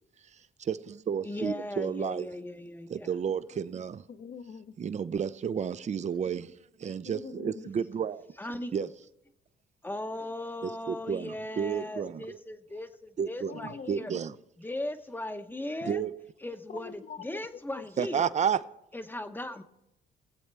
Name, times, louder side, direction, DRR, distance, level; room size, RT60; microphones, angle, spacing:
voice 1, 0.6-2.3 2.9-4.0 4.8-6.5 6.8-8.2 8.7-8.9 10.6-12.4 13.2-13.6 13.9-14.3 15.8-16.1 18.0-18.6, right 7 dB, 35° right, 0.5 m, -31 dB
voice 2, 1.2-3.1 8.4-8.7 9.8-14.1 14.6-16.0 16.4-18.2 18.9-19.6, left 1 dB, 10° left, 0.8 m, -38 dB
voice 3, 4.1-4.7 7.0-7.8 8.5-8.9 13.4-14.2 16.7-17.4 17.7-18.1, left 6 dB, 45° left, 0.9 m, -44 dB
20.0 x 7.9 x 3.4 m
cardioid pair, 90°, 20 cm